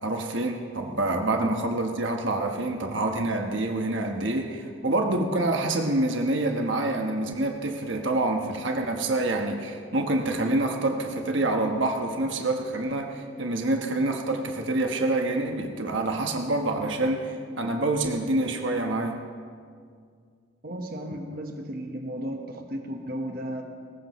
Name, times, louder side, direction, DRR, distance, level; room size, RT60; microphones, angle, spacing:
voice 1, 0.0-19.2, right 2 dB, 65° right, 3 dB, 1.2 m, -27 dB
voice 2, 20.6-23.6, right 1 dB, 45° right, 3 dB, 1.2 m, -34 dB
20.0 x 18.0 x 3.1 m, 2.1 s
head